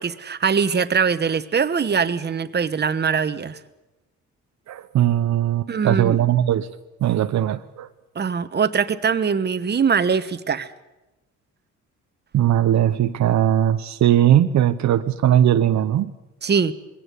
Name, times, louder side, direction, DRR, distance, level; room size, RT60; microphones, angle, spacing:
voice 1, 0.0-3.6 5.7-6.2 8.1-10.7 16.4-16.7, right 6 dB, 35° right, 12 dB, 1.2 m, -22 dB
voice 2, 4.7-6.7 7.0-7.9 12.3-16.1, right 11 dB, 65° right, 10 dB, 0.8 m, -19 dB
21.5 x 17.0 x 8.3 m, 1.0 s
cardioid pair, 90°, 30 cm